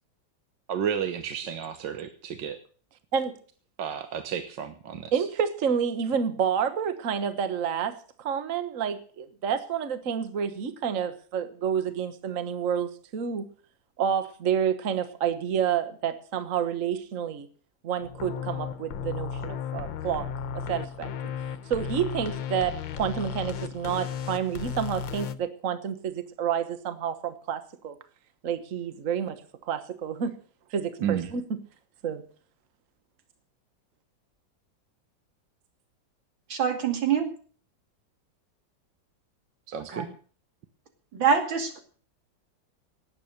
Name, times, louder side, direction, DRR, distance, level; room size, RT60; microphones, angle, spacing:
voice 1, 0.7-2.6 3.8-5.1 31.0-31.3 39.7-40.1, right 8 dB, 70° right, 8 dB, 1.7 m, -31 dB
voice 2, 5.1-13.4 14.0-17.5 17.8-21.1 21.7-28.0 28.4-30.4 30.7-31.6 32.0-32.2, right 8 dB, 45° right, 11 dB, 1.5 m, -29 dB
sound 1, 18.0-25.4, left 7 dB, 80° left, 1.6 m, -34 dB
voice 3, 36.5-37.3 39.9-40.1 41.1-41.8, right 6 dB, 90° right, 5 dB, 3.2 m, -25 dB
18.5 x 8.8 x 6.5 m, 0.43 s
omnidirectional pair, 2.1 m